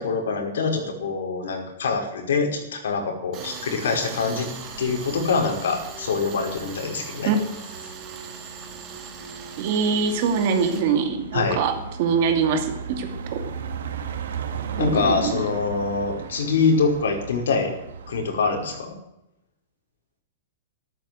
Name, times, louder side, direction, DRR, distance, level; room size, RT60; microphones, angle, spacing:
voice 1, 0.0-4.5 4.8-7.3 11.3-11.6 14.8-17.7 18.1-18.9, left 4 dB, 85° left, 2 dB, 5.2 m, -24 dB
Tools, 3.3-10.8, right 5 dB, 20° right, 2.4 m, -39 dB
sound 1, 4.6-18.8, right 6 dB, 80° right, 2.6 m, -37 dB
voice 2, 9.6-13.4 14.8-15.4, right 5 dB, 35° right, 6 dB, 2.4 m, -23 dB
13.5 x 13.5 x 7.7 m, 0.86 s
supercardioid pair, 180°, 0 cm